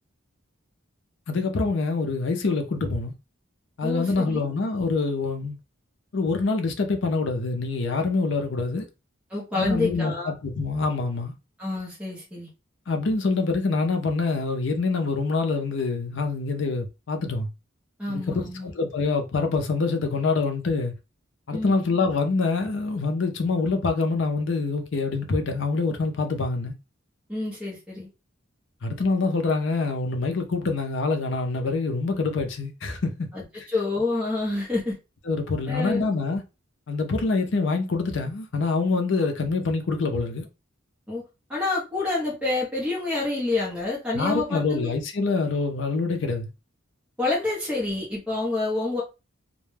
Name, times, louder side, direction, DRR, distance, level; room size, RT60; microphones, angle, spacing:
voice 1, 1.3-3.1 3.8-5.6 6.1-8.9 9.5-11.3 12.9-17.5 18.1-20.9 21.5-26.7 28.8-33.3 35.3-36.4 36.9-40.5 44.1-46.5, left 3 dB, 60° left, 0.5 m, -25 dB
voice 2, 3.8-4.5 9.3-10.3 11.6-12.5 18.0-18.7 21.5-21.8 27.3-28.1 33.3-33.4 33.7-35.0 35.7-36.1 41.1-41.2 41.5-44.9 47.2-49.0, left 2 dB, 5° right, 0.7 m, -28 dB
2.1 x 2.1 x 3.1 m
head